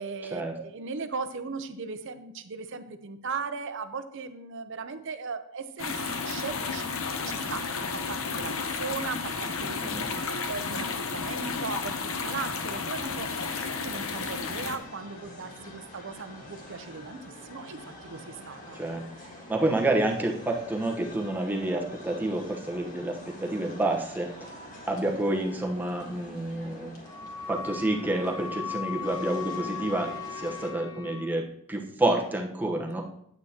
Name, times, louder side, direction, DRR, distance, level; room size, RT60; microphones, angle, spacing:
voice 1, 0.0-6.0 6.2-6.9 7.2-9.8 10.1-18.8 19.2-19.4, right 5 dB, 60° right, 10 dB, 0.7 m, -38 dB
sound 1, 5.8-14.8, left 4 dB, 65° left, 0.8 m, -32 dB
sound 2, 13.5-30.7, left 1 dB, 35° left, 1.6 m, -46 dB
voice 2, 19.5-24.5 24.9-26.9 27.5-33.0, right 1 dB, 10° right, 0 dB, 1.0 m, -29 dB
Wind instrument woodwind instrument, 27.0-31.4, left 6 dB, 15° left, 0.5 m, -38 dB
9.4 x 8.8 x 2.9 m, 0.73 s
head